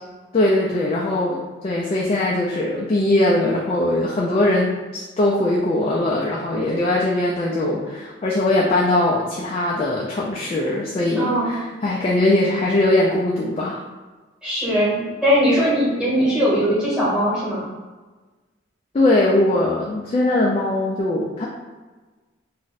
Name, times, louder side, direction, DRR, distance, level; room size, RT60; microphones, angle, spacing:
voice 1, 0.3-13.8 18.9-21.5, left 1 dB, 30° left, -4 dB, 0.3 m, -21 dB
voice 2, 11.2-11.5 14.4-17.6, equal, 5° right, -9 dB, 1.1 m, -20 dB
2.5 x 2.1 x 3.9 m, 1.3 s
head